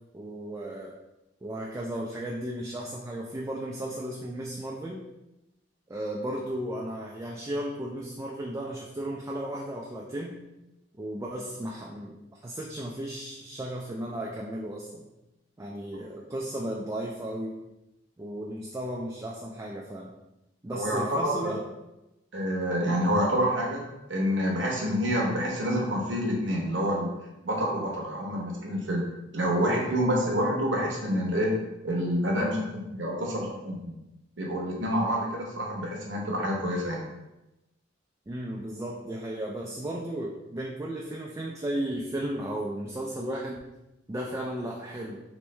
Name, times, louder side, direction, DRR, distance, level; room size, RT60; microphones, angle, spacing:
voice 1, 0.1-0.9 1.4-5.1 5.9-10.4 11.0-15.1 15.6-17.6 18.2-20.1 20.6-21.6 38.3-43.6 44.1-45.2, right 1 dB, 15° right, -2 dB, 0.3 m, -35 dB
voice 2, 20.7-21.6 22.3-23.8 24.1-27.2 27.4-31.6 31.8-33.9 34.4-37.0, equal, 70° right, -2 dB, 0.9 m, -28 dB
3.1 x 3.1 x 3.2 m, 0.96 s
head